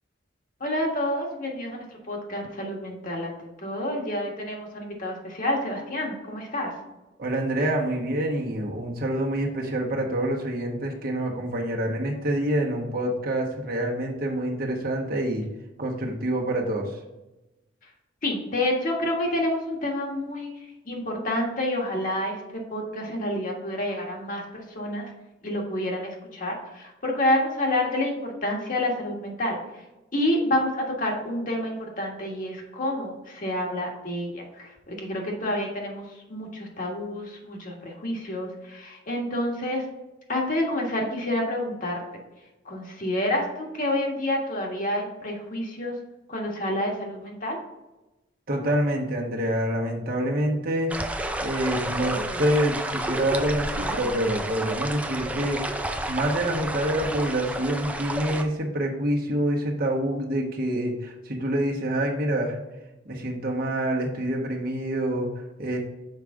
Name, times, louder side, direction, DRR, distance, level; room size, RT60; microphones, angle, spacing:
voice 1, 0.6-6.7 18.2-25.1 25.4-29.6 30.1-39.8 40.3-42.0 42.6-45.9 46.3-47.6, left 1 dB, 45° left, 0 dB, 1.5 m, -28 dB
voice 2, 7.2-15.5 15.8-17.0 48.5-50.9 51.4-55.6 56.1-62.6 63.0-65.8, right 1 dB, 55° right, 0 dB, 1.2 m, -26 dB
sound 1, 50.9-58.4, right 1 dB, 10° right, 0.5 m, -31 dB
6.6 x 4.8 x 3.7 m, 1.0 s
head